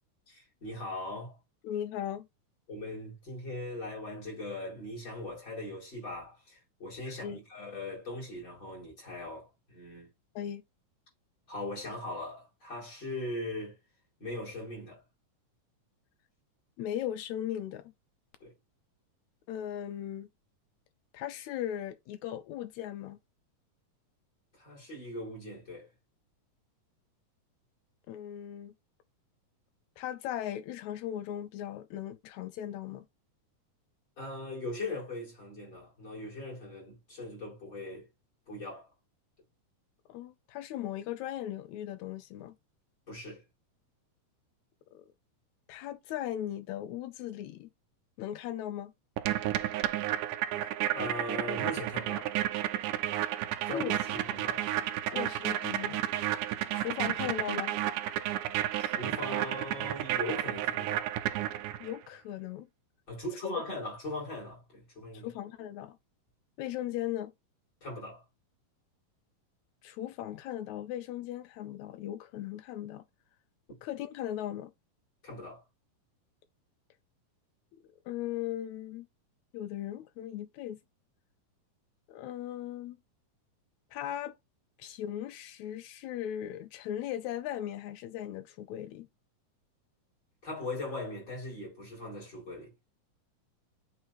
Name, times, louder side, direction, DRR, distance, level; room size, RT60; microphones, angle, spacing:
voice 1, 0.3-1.4 2.7-10.1 11.5-13.8 14.2-15.0 18.4-18.5 24.5-25.9 34.2-38.1 38.5-38.9 43.1-43.4 50.9-52.3 53.7-54.7 58.8-61.1 63.1-65.3 67.8-68.2 75.2-75.6 90.4-92.7, left 1 dB, 30° left, 5.4 m, -40 dB
voice 2, 1.6-2.3 7.1-7.4 10.3-10.6 16.8-17.9 19.5-20.3 21.1-23.2 28.1-28.7 30.0-33.1 40.1-42.6 44.9-45.1 45.7-47.7 48.2-48.9 53.7-53.9 55.1-56.0 56.7-57.8 61.8-62.7 63.4-63.6 65.1-66.0 66.6-67.3 69.8-73.0 73.8-74.7 77.7-79.1 79.5-80.8 82.1-83.0 83.9-84.3 84.8-89.1, left 11 dB, 85° left, 1.6 m, -38 dB
sound 1, 49.2-62.0, right 13 dB, 80° right, 2.1 m, -32 dB
8.3 x 4.4 x 3.0 m
omnidirectional pair, 3.9 m